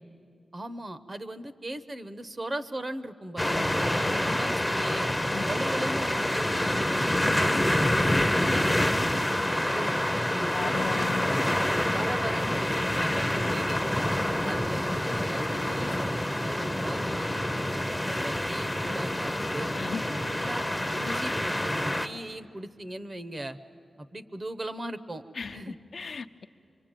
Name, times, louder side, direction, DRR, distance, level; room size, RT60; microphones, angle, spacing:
voice 1, 0.5-5.1 5.4-10.0 10.3-11.3 11.9-13.8 14.4-17.7 18.0-19.7 20.1-23.6 24.0-25.2 25.5-25.8, right 1 dB, 30° right, 13 dB, 0.8 m, -38 dB
sound 1, 3.4-22.1, left 1 dB, 5° left, 0.7 m, -27 dB
voice 2, 4.0-4.4 5.3-5.4 10.5-11.2 13.3-13.6 19.8-20.1 25.3-26.5, left 5 dB, 60° left, 7 dB, 0.7 m, -36 dB
24.5 x 24.0 x 9.0 m, 2.5 s
wide cardioid pair, 120°, 0 cm